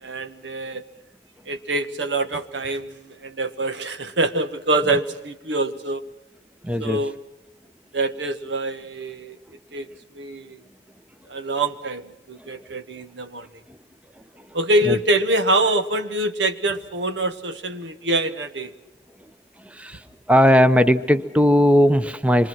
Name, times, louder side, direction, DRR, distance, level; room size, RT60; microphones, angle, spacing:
voice 1, 0.0-0.8 1.4-6.0 6.8-7.2 7.9-9.4 9.7-9.9 10.1-10.6 11.3-13.5 14.5-18.7, right 2 dB, 85° right, 8 dB, 1.5 m, -25 dB
voice 2, 6.6-7.0 14.9-15.0 19.8-20.0 20.3-22.5, equal, 5° right, 11 dB, 0.8 m, -17 dB
26.5 x 23.0 x 6.1 m, 0.94 s
head